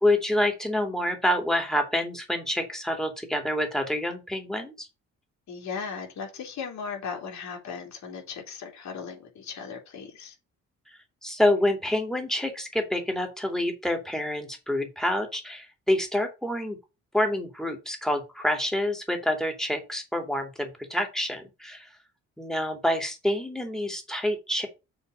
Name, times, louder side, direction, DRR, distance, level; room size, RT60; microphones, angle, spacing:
voice 1, 0.0-4.9 11.2-16.8 17.1-21.9 22.4-24.7, left 1 dB, ahead, 2.6 m, -27 dB
voice 2, 5.5-10.3, left 6 dB, 65° left, 3.2 m, -37 dB
6.9 x 4.1 x 6.5 m
cardioid pair, 90°, 30 cm